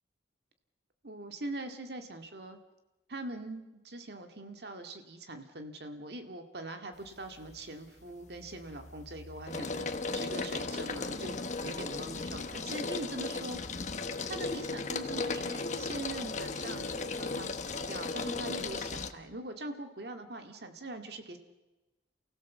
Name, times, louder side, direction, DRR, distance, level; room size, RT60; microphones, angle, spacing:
voice 1, 1.0-2.6 3.1-13.8 14.3-21.4, right 2 dB, 65° right, 6 dB, 2.1 m, -42 dB
sound 1, 7.1-7.6 8.0-19.1, left 3 dB, 40° left, 1.2 m, -36 dB
28.5 x 16.0 x 7.3 m, 1.1 s
head